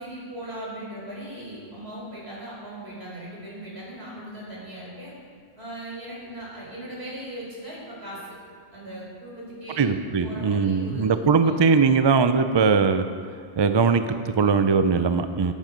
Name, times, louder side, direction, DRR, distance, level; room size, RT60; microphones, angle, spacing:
voice 1, 0.0-5.1 5.6-8.4 8.7-9.9 10.2-11.6 12.4-12.6 14.4-14.6 14.9-15.2, right 1 dB, 60° right, -5 dB, 4.3 m, -39 dB
voice 2, 9.8-13.0 13.6-15.5, right 5 dB, 45° right, 10 dB, 0.3 m, -20 dB
12.0 x 10.5 x 5.2 m, 2.1 s
omnidirectional pair, 1.2 m